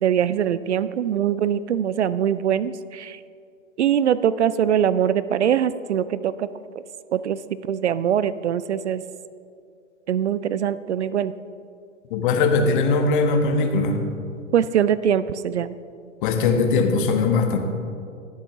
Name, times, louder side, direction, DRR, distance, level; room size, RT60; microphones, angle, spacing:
voice 1, 0.0-3.2 3.8-6.5 7.1-9.0 10.1-11.3 14.5-15.7, right 9 dB, 60° right, 16 dB, 0.5 m, -22 dB
voice 2, 12.1-14.0 16.2-17.6, left 4 dB, 40° left, 4 dB, 1.5 m, -20 dB
21.5 x 7.2 x 3.6 m, 2.4 s
figure-of-eight pair, 110°, 38 cm